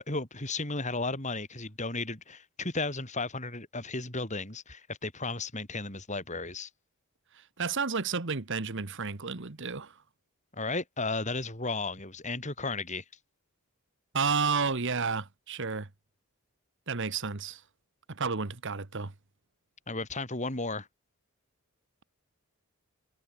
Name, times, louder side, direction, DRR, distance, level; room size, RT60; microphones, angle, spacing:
voice 1, 0.0-6.7 10.5-13.0 19.9-20.9, left 3 dB, 35° left, 5.9 m, -34 dB
voice 2, 7.6-10.0 14.1-15.9 16.9-17.6 18.1-19.1, right 5 dB, 55° right, 1.3 m, -31 dB
head